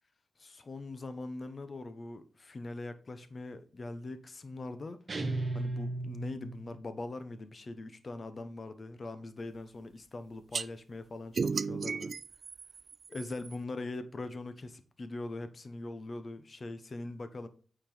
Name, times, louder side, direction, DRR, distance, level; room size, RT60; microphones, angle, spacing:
voice 1, 0.4-5.0 5.5-12.1 13.1-17.5, left 2 dB, 40° left, 1.0 m, -42 dB
sound 1, 5.1-6.8, right 2 dB, 30° right, 1.8 m, -35 dB
sound 2, 10.5-10.7 11.4-13.6, right 5 dB, 50° right, 0.4 m, -34 dB
9.1 x 4.5 x 5.1 m
wide cardioid pair, 125°, 0 cm